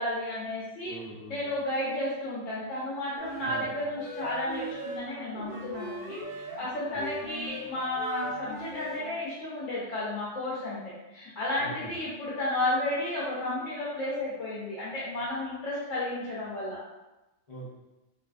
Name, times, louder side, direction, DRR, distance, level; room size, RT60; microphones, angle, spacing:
voice 1, 0.0-1.0 1.3-16.8, left 1 dB, 80° left, -7 dB, 0.9 m, -32 dB
voice 2, 0.8-1.5 3.4-3.7 6.9-7.1 11.6-11.9 17.5-17.7, right 1 dB, 35° left, -11 dB, 0.9 m, -43 dB
sound 1, 3.2-9.3, right 2 dB, 80° right, 1.0 m, -40 dB
2.6 x 2.4 x 2.2 m, 1.1 s
omnidirectional pair, 1.2 m